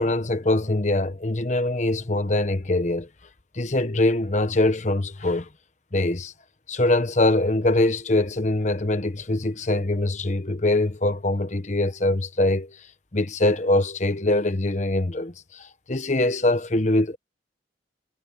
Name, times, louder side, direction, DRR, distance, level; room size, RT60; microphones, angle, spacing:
voice 1, 0.0-3.1 3.5-5.5 5.9-6.3 6.7-12.8 13.1-17.2, left 2 dB, 40° left, 1.2 m, -23 dB
head